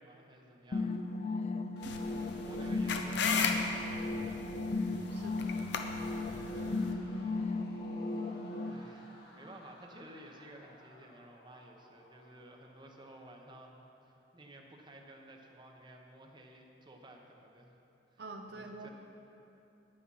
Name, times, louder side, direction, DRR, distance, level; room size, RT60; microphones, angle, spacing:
voice 1, 0.0-1.5 2.4-4.5 6.0-7.4 8.0-17.7 18.1-18.2 18.5-18.9, right 1 dB, 25° right, 2 dB, 0.9 m, -54 dB
sound 1, 0.7-8.7, left 3 dB, 40° left, 0.5 m, -36 dB
sound 2, 1.8-6.9, left 5 dB, 80° left, 0.7 m, -36 dB
sound 3, 1.8-13.8, left 1 dB, 65° left, 1.7 m, -57 dB
voice 2, 1.8-2.7 5.1-5.6 18.2-18.9, right 2 dB, 70° right, 4 dB, 0.6 m, -48 dB
9.0 x 8.7 x 5.5 m, 2.8 s
head